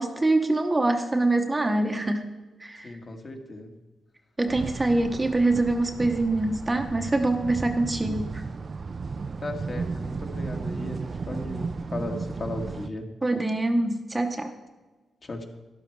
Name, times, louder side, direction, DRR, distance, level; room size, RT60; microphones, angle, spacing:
voice 1, 0.0-2.3 2.6-3.0 4.4-8.4 13.2-14.5, right 2 dB, 15° right, 6 dB, 0.8 m, -24 dB
voice 2, 2.8-3.7 9.4-13.1 15.2-15.4, left 2 dB, 35° left, 4 dB, 1.6 m, -36 dB
sound 1, 4.5-12.9, right 4 dB, 40° right, 0.4 m, -34 dB
12.5 x 11.5 x 4.6 m, 1.2 s
cardioid pair, 120°, 0 cm